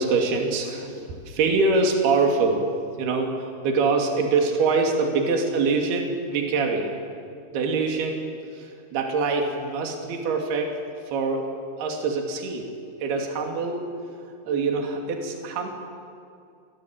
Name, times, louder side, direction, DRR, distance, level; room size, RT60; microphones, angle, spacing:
voice 1, 0.0-2.7 3.0-6.9 7.5-8.3 8.5-10.7 11.1-11.5 11.8-12.7 13.0-13.9 14.5-15.7, right 4 dB, 65° right, 2 dB, 4.4 m, -24 dB
26.5 x 22.0 x 7.8 m, 2.4 s
omnidirectional pair, 5.0 m